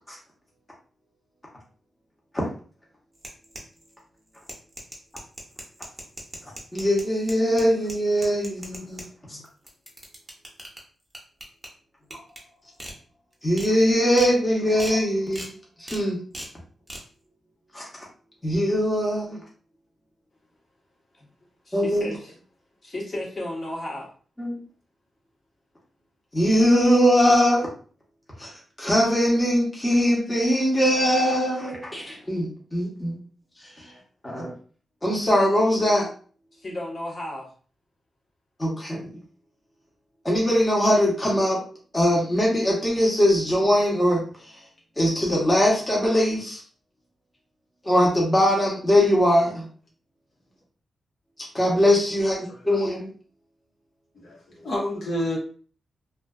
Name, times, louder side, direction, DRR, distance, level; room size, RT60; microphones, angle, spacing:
sound 1, 3.1-3.9 4.3-9.1 9.4-10.8 11.1-11.7 12.1-12.4 12.8-12.9 13.3-13.7 14.1-14.3 14.8-15.0 15.3-15.5 15.9-16.0 16.3-16.5 16.9-17.0, right 1 dB, 15° right, 0.8 m, -39 dB
voice 1, 6.7-9.0 9.3-9.4 13.4-15.5 15.8-16.2 17.7-17.8 18.4-19.4 21.7-22.1 24.4-24.6 26.3-27.7 28.4-28.5 28.8-33.2 33.8-33.9 34.2-34.5 35.0-36.1 38.6-39.1 40.2-41.6 41.9-44.2 45.0-46.6 47.8-49.7 51.5-53.1, equal, 20° left, -4 dB, 0.9 m, -21 dB
voice 2, 21.6-22.3 22.8-24.1 36.5-37.5, left 1 dB, 45° left, -3 dB, 1.1 m, -34 dB
voice 3, 54.1-55.4, left 1 dB, 70° left, -4 dB, 1.0 m, -29 dB
2.4 x 2.3 x 2.3 m, 0.42 s
cardioid pair, 80°, 0 cm